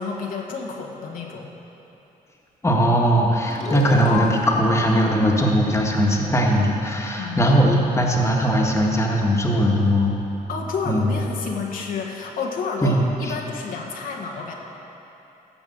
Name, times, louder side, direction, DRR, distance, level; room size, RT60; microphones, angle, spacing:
voice 1, 0.0-1.5 7.2-8.0 10.5-14.5, left 4 dB, 75° left, 0 dB, 1.4 m, -30 dB
voice 2, 2.6-10.1 10.9-11.2 12.8-13.3, equal, 20° left, -1 dB, 1.5 m, -20 dB
sound 1, 3.5-6.7, left 4 dB, 50° left, 1.8 m, -32 dB
14.5 x 5.3 x 7.8 m, 3.0 s
cardioid pair, 110°, 15 cm